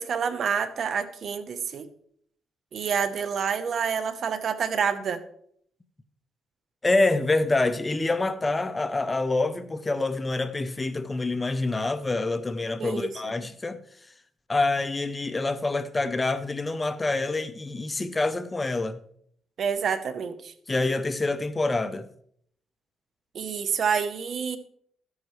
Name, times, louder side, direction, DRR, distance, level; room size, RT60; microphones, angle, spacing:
voice 1, 0.0-1.9 2.7-5.2 12.8-13.1 19.6-20.5 23.3-24.6, right 6 dB, 55° right, 0.9 m, -28 dB
voice 2, 6.8-13.8 14.5-19.0 20.7-22.1, left 2 dB, 20° left, 0.6 m, -26 dB
13.0 x 9.7 x 3.2 m
cardioid pair, 90°, 0 cm